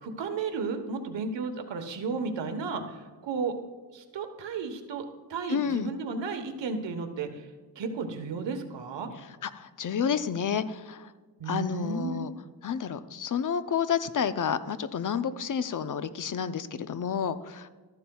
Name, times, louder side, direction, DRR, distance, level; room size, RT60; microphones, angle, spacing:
voice 1, 0.0-3.5 3.9-7.5 7.7-9.1 11.4-12.3, right 4 dB, 85° right, 6 dB, 1.3 m, -33 dB
voice 2, 5.5-5.9 9.2-11.1 11.5-12.3 12.6-17.7, left 7 dB, 45° left, 12 dB, 0.7 m, -30 dB
13.5 x 11.5 x 2.3 m, 1.4 s
cardioid pair, 80°, 43 cm